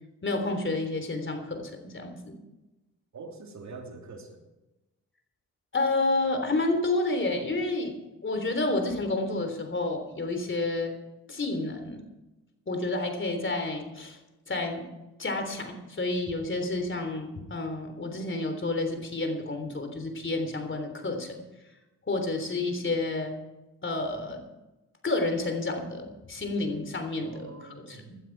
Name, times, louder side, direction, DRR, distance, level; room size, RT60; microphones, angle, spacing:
voice 1, 0.2-2.4 5.7-7.9 8.2-10.9 11.3-12.0 12.7-14.2 14.5-14.9 15.2-21.4 22.1-23.4 23.8-24.4 25.0-27.5 27.8-28.2, left 2 dB, 35° left, 6 dB, 3.5 m, -30 dB
voice 2, 3.1-4.4 27.2-28.1, right 3 dB, 55° right, 2 dB, 3.1 m, -44 dB
17.0 x 12.0 x 4.7 m, 1.0 s
cardioid pair, 70°, 34 cm